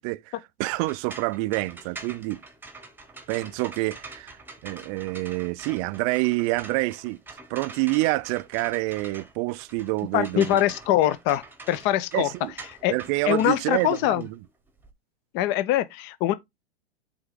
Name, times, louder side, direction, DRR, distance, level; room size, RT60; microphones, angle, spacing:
voice 1, 0.0-2.4 3.3-4.4 4.6-7.2 7.5-10.6 12.1-12.5 12.9-14.3, right 22 dB, 35° right, 0.4 m, -27 dB
sound 1, 0.7-14.9, right 3 dB, 5° right, 1.1 m, -45 dB
voice 2, 10.1-12.3 12.8-12.9 13.3-14.2 15.3-16.3, left 13 dB, 35° left, 0.6 m, -23 dB
7.8 x 3.5 x 3.7 m
hypercardioid pair, 115°, 30 cm